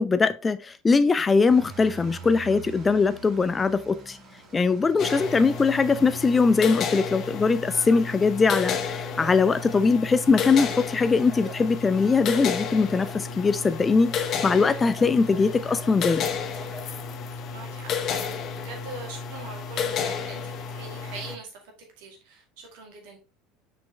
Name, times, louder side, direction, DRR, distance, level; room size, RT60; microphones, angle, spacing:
voice 1, 0.0-4.2 4.5-16.2, left 4 dB, 20° left, 0.4 m, -21 dB
sound 1, 1.5-6.7, right 5 dB, 40° right, 1.8 m, -45 dB
sound 2, 5.0-21.4, left 6 dB, 40° left, 0.8 m, -32 dB
voice 2, 5.0-5.4 17.5-23.2, right 3 dB, 60° right, 2.1 m, -42 dB
sound 3, 7.7-8.1 8.5-10.7 11.0-18.2 18.6-18.8 19.3-19.4 19.8-19.9, right 1 dB, 10° right, 1.8 m, -46 dB
6.0 x 5.2 x 3.3 m
figure-of-eight pair, 70°, 0 cm